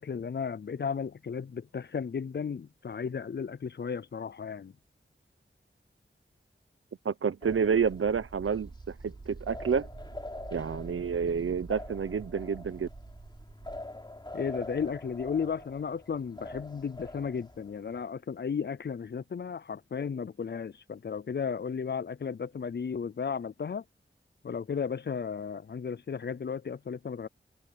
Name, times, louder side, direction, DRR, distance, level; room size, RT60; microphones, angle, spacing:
voice 1, 0.0-4.7 14.3-23.8 24.4-27.3, left 6 dB, 55° left, 0.5 m, -34 dB
voice 2, 7.0-9.9 10.5-12.9, right 6 dB, 85° right, 0.7 m, -29 dB
sound 1, 7.4-18.0, left 2 dB, 20° left, 3.2 m, -45 dB
sound 2, 7.9-13.8, right 3 dB, 55° right, 5.7 m, -47 dB
wide cardioid pair, 85°, 21 cm